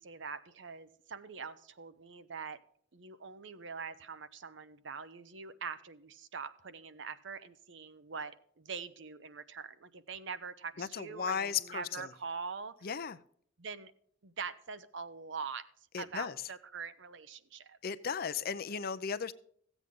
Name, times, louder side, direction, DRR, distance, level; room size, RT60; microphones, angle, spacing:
voice 1, 0.0-2.6 2.9-12.9 13.6-13.9 14.2-15.7 16.0-17.8, right 5 dB, 65° right, 0.7 m, -43 dB
voice 2, 10.8-12.0 12.8-13.2 15.9-16.4 17.8-19.3, left 7 dB, 50° left, 0.5 m, -35 dB
15.0 x 8.1 x 3.7 m
head